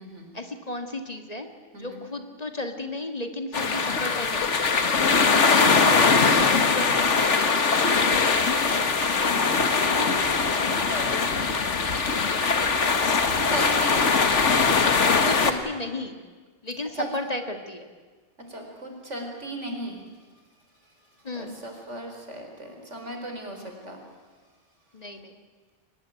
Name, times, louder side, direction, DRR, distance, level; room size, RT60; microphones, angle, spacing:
voice 1, 0.3-1.5 1.8-4.7 5.3-7.4 15.2-16.2 16.6-17.9 21.2-21.6 24.9-25.4, left 2 dB, 35° left, 5 dB, 1.9 m, -33 dB
sound 1, 3.5-15.5, left 4 dB, 85° left, 1.9 m, -21 dB
voice 2, 8.7-11.3 13.1-14.1 16.9-17.1 18.5-20.0 21.3-24.0, right 1 dB, 85° right, 3 dB, 4.6 m, -37 dB
23.5 x 20.0 x 9.2 m, 1.4 s
omnidirectional pair, 1.2 m